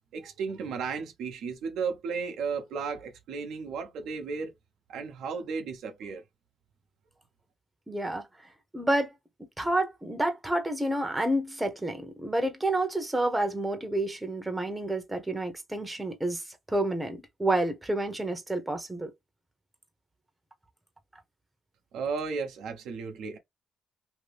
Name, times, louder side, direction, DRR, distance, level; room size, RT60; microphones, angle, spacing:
voice 1, 0.1-4.5 4.9-6.2 21.9-23.4, right 5 dB, 80° right, 0.7 m, -34 dB
voice 2, 7.9-8.3 8.7-9.1 9.6-19.1, right 1 dB, 10° right, 0.8 m, -29 dB
2.8 x 2.8 x 3.3 m
cardioid pair, 90°, 0 cm